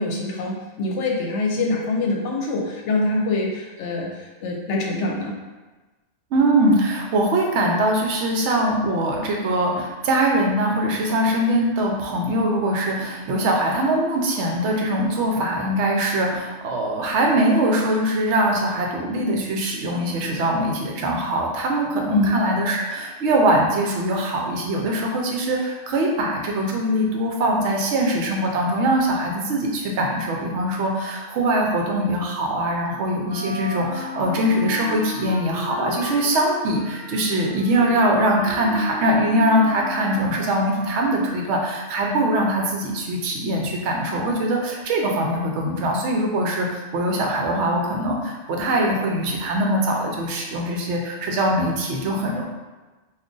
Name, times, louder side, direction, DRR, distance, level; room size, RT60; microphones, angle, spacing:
voice 1, 0.0-5.3 22.1-22.3, left 2 dB, 70° left, -1 dB, 0.9 m, -24 dB
voice 2, 6.3-52.4, right 1 dB, 70° right, 0 dB, 0.8 m, -22 dB
Wind instrument woodwind instrument, 33.2-41.4, equal, 20° left, 0.4 m, -34 dB
2.4 x 2.4 x 3.7 m, 1.2 s
omnidirectional pair, 1.3 m